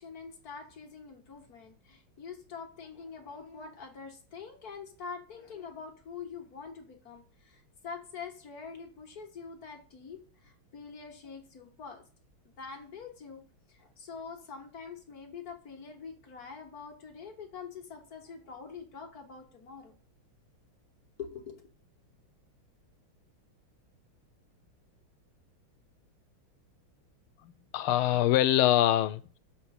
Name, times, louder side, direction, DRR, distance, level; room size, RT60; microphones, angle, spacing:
voice 1, 0.0-12.0 12.6-13.4 13.7-20.0 21.2-21.7, left 5 dB, 50° left, 1.8 m, -45 dB
voice 2, 27.4-29.4, left 13 dB, 90° left, 1.5 m, -25 dB
7.1 x 4.4 x 6.4 m
omnidirectional pair, 2.3 m